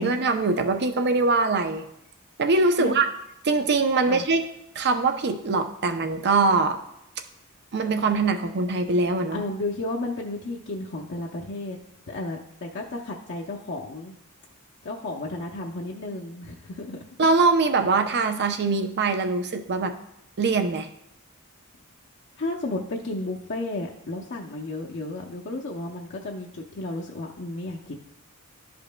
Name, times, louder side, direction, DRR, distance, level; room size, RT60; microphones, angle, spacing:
voice 1, 0.0-1.8 2.4-3.1 3.4-4.4 4.8-6.8 7.7-9.4 17.2-19.9 20.4-20.9, right 3 dB, 50° right, 7 dB, 0.6 m, -22 dB
voice 2, 9.3-11.8 12.1-14.1 14.8-17.0 22.4-27.9, left 2 dB, 55° left, -2 dB, 0.6 m, -33 dB
11.5 x 5.2 x 2.2 m, 0.79 s
head